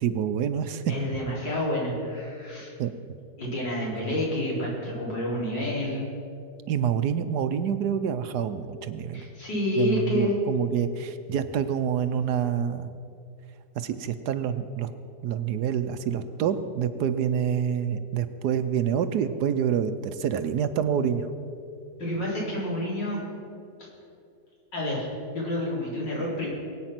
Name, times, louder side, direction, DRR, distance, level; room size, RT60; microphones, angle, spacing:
voice 1, 0.0-0.8 2.8-2.9 6.7-9.2 9.8-12.9 13.8-14.9 15.2-21.3, right 8 dB, 70° right, 11 dB, 1.2 m, -27 dB
voice 2, 0.9-2.7 3.4-6.1 9.1-10.3 22.0-23.2 24.7-26.5, left 1 dB, 80° left, -5 dB, 4.7 m, -29 dB
22.0 x 8.8 x 5.9 m, 2.5 s
omnidirectional pair, 1.9 m